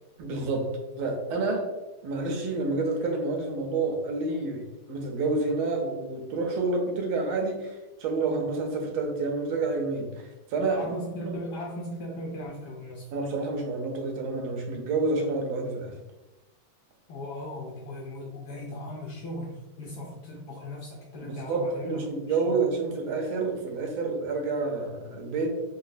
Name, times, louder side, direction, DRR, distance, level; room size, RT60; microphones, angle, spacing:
voice 1, 0.2-1.7 2.0-11.4 13.1-16.0 21.2-25.6, right 3 dB, 90° right, 2 dB, 1.5 m, -29 dB
voice 2, 10.7-13.1 17.1-22.6, left 1 dB, 75° left, -3 dB, 1.0 m, -38 dB
3.9 x 2.2 x 2.5 m, 1.0 s
omnidirectional pair, 2.2 m